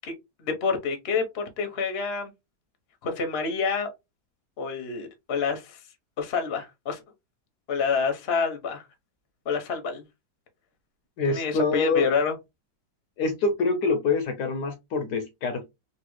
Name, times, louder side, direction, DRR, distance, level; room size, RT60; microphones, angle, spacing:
voice 1, 0.4-2.3 3.0-3.9 4.6-5.8 6.2-7.0 7.7-8.8 9.4-10.0 11.3-12.3, left 5 dB, 45° left, 0.9 m, -27 dB
voice 2, 11.2-12.1 13.2-15.7, left 4 dB, 70° left, 1.1 m, -25 dB
3.3 x 2.7 x 3.0 m
omnidirectional pair, 2.0 m